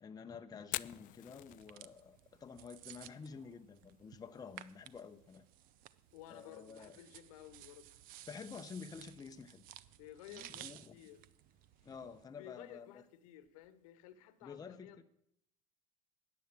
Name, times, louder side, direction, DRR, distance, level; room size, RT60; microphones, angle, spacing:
voice 1, 0.0-5.4 6.3-7.0 8.3-9.6 10.3-11.0 11.8-13.0 14.4-15.0, left 6 dB, 20° left, 7 dB, 0.8 m, -50 dB
Fire, 0.6-14.5, left 18 dB, 45° left, 0.5 m, -53 dB
sound 1, 1.5-12.2, right 14 dB, 50° right, 0.7 m, -56 dB
voice 2, 6.1-7.9 10.0-11.2 12.4-15.0, left 12 dB, 65° left, 14 dB, 1.2 m, -55 dB
14.0 x 9.4 x 7.5 m, 0.74 s
figure-of-eight pair, 75°, 19 cm